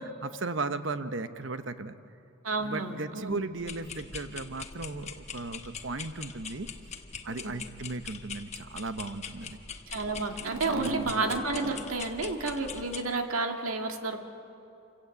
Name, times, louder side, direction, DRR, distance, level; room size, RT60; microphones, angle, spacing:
voice 1, 0.2-2.0 2.6-6.7 7.3-9.6 10.7-11.2, right 3 dB, 65° right, 11 dB, 0.9 m, -36 dB
voice 2, 2.4-3.4 9.9-14.2, right 3 dB, 90° right, 4 dB, 1.9 m, -31 dB
sound 1, 3.6-13.0, left 6 dB, 30° left, 1.1 m, -43 dB
27.5 x 16.0 x 8.3 m, 2.8 s
head